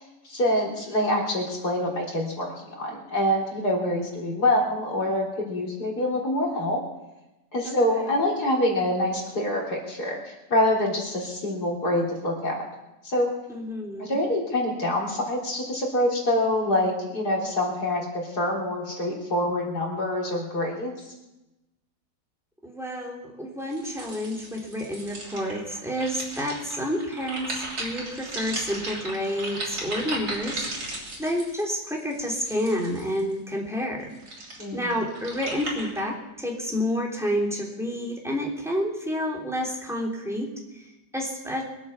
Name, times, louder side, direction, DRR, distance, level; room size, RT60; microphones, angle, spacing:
voice 1, 0.2-6.8 7.5-12.7 13.0-13.3 14.0-20.9 34.6-35.0, left 1 dB, 60° left, -2 dB, 4.1 m, -26 dB
voice 2, 7.6-8.1 13.5-14.2 22.6-30.9 31.2-34.1 34.7-41.6, equal, ahead, -2 dB, 3.2 m, -29 dB
sound 1, 23.7-33.3 34.0-36.0, right 2 dB, 60° right, 3.8 m, -36 dB
22.5 x 8.4 x 7.1 m, 0.99 s
omnidirectional pair, 1.9 m